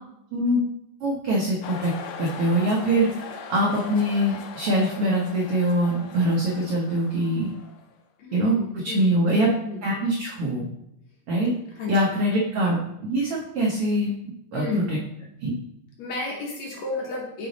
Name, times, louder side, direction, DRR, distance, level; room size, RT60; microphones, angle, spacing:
voice 1, 1.0-1.9 2.2-7.5 8.3-9.5 9.8-10.7 11.3-11.5 11.9-14.1 14.5-15.0 15.4-15.5, right 1 dB, 90° right, -3 dB, 1.2 m, -23 dB
sound 1, 1.6-7.9, left 6 dB, 85° left, 2.3 m, -40 dB
voice 2, 8.2-9.2 9.7-9.8 11.4-11.5 11.8-12.0 14.5-14.9 16.0-17.5, left 3 dB, 65° left, -2 dB, 1.9 m, -31 dB
6.8 x 3.9 x 3.9 m, 0.81 s
omnidirectional pair, 3.9 m